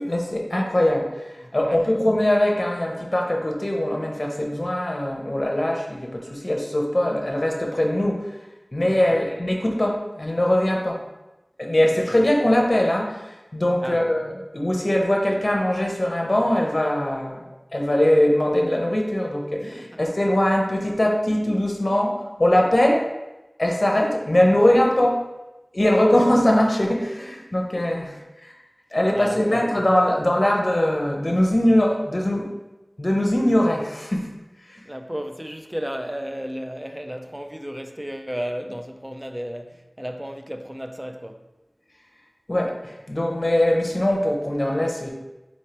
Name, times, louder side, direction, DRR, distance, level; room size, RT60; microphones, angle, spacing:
voice 1, 0.0-8.4 8.7-11.0 11.6-23.1 23.6-25.2 25.7-28.5 28.9-32.5 33.0-34.3 34.6-34.8 42.5-45.1, left 1 dB, 45° left, 0.7 m, -21 dB
voice 2, 1.4-2.0 9.1-9.3 12.1-12.2 13.8-14.1 19.7-20.0 29.1-29.7 34.9-41.5, equal, 15° right, 0.3 m, -34 dB
4.2 x 3.2 x 2.9 m
wide cardioid pair, 50°, 0 cm